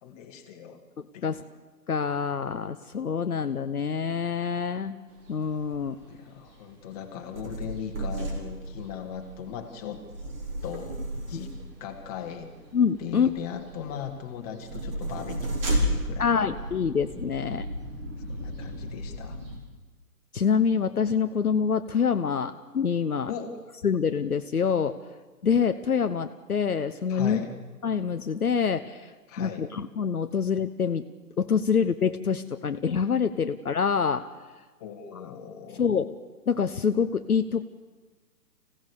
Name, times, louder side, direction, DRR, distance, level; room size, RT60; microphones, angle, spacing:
voice 1, 0.0-0.8 1.1-1.5 6.1-10.0 10.6-11.5 11.8-12.5 13.0-16.5 18.3-19.4 23.3-23.6 27.1-27.5 29.3-29.7 34.8-35.9, left 8 dB, 25° left, 4 dB, 2.1 m, -38 dB
voice 2, 1.9-5.0 5.3-6.0 11.3-11.4 12.7-13.3 16.2-17.7 20.3-23.3 23.8-25.0 25.4-27.4 27.8-29.1 29.4-31.0 31.4-34.2 35.8-36.2 36.5-37.6, left 6 dB, 65° left, 9 dB, 1.1 m, -26 dB
sound 1, 5.1-19.6, equal, 35° right, 4.6 m, -35 dB
25.5 x 17.0 x 6.8 m, 1.3 s
figure-of-eight pair, 135°, 47 cm